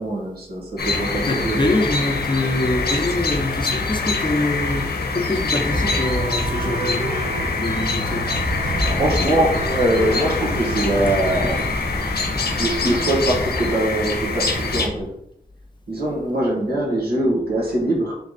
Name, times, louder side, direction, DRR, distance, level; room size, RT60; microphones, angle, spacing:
voice 1, 0.0-1.6 8.8-11.8 12.6-15.1 15.9-18.1, right 1 dB, 75° right, -3 dB, 1.5 m, -22 dB
sound 1, 0.8-14.9, left 3 dB, 70° left, 0.8 m, -24 dB
voice 2, 1.2-7.1 7.4-8.3, left 2 dB, 30° left, 2 dB, 0.9 m, -24 dB
sound 2, 5.6-11.6, right 1 dB, 55° right, 1.5 m, -29 dB
Livestock farm animals working animals, 8.4-15.1, right 1 dB, 10° right, 0.6 m, -36 dB
3.4 x 3.2 x 3.9 m, 0.76 s
cardioid pair, 45°, 17 cm